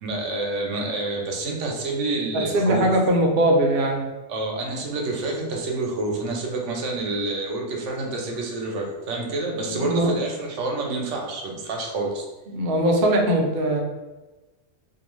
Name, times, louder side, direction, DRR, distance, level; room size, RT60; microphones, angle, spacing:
voice 1, 0.0-2.9 4.3-12.2, right 2 dB, 90° right, 1 dB, 0.9 m, -28 dB
voice 2, 2.3-4.0 9.6-10.1 12.5-13.8, right 1 dB, 60° right, 1 dB, 0.7 m, -21 dB
2.6 x 2.2 x 3.0 m, 1.1 s
omnidirectional pair, 1.2 m